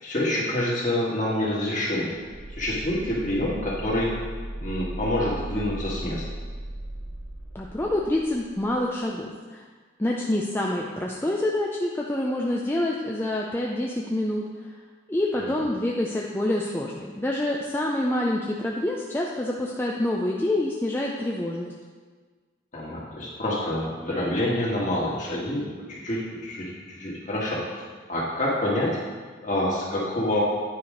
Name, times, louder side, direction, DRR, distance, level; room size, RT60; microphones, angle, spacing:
voice 1, 0.0-2.1 2.5-4.1 4.6-6.3 15.4-15.5 22.7-27.7 28.1-29.0 29.4-30.4, left 1 dB, 40° left, -4 dB, 2.0 m, -27 dB
sound 1, 2.1-8.8, right 1 dB, 90° right, 1.1 m, -37 dB
voice 2, 7.5-9.6 10.0-14.4 15.1-21.7, left 1 dB, 10° left, -2 dB, 0.5 m, -27 dB
9.6 x 4.8 x 5.2 m, 1.5 s
head